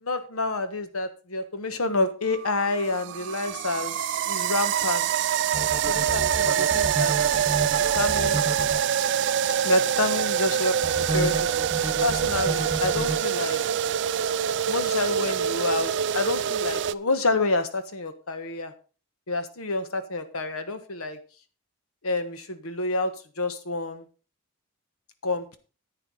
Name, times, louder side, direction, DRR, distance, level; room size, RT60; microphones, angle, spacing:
voice 1, 0.0-4.0 4.2-5.1 6.1-7.1 7.9-8.4 9.6-11.5 12.0-13.6 14.7-18.7 19.3-21.2 22.0-23.1 23.4-24.0 25.2-25.6, left 2 dB, 70° left, 10 dB, 1.3 m, -28 dB
sound 1, 2.3-16.9, right 9 dB, 55° right, 0.4 m, -25 dB
sound 2, 5.5-8.8 10.8-13.2, right 2 dB, 20° right, 1.2 m, -31 dB
10.5 x 9.0 x 3.9 m, 0.36 s
head